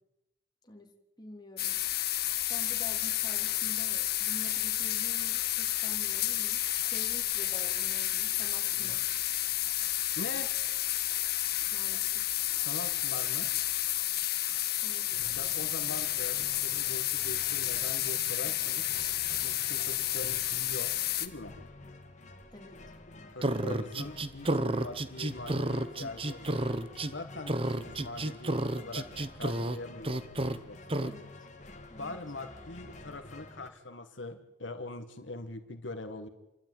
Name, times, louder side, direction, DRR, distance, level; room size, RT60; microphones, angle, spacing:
voice 1, 1.2-1.8 2.5-6.6 6.9-9.1 11.7-12.3 14.8-15.2 22.5-22.8 31.0-31.3 31.9-32.2, left 1 dB, 25° left, 1 dB, 3.2 m, -48 dB
sound 1, 1.6-21.3, left 13 dB, 55° left, 1.4 m, -31 dB
voice 2, 10.2-10.5 12.5-13.5 15.2-18.9 19.3-20.9 21.2-21.5 23.3-26.6 27.1-31.1 32.0-36.3, left 2 dB, 90° left, 7 dB, 1.8 m, -43 dB
sound 2, 15.1-33.7, left 2 dB, 40° left, 2.4 m, -50 dB
sound 3, 23.4-27.1 27.5-29.8 30.0-30.6 30.9-31.1, right 1 dB, 30° right, 1.0 m, -31 dB
28.5 x 12.5 x 9.3 m, 0.94 s
head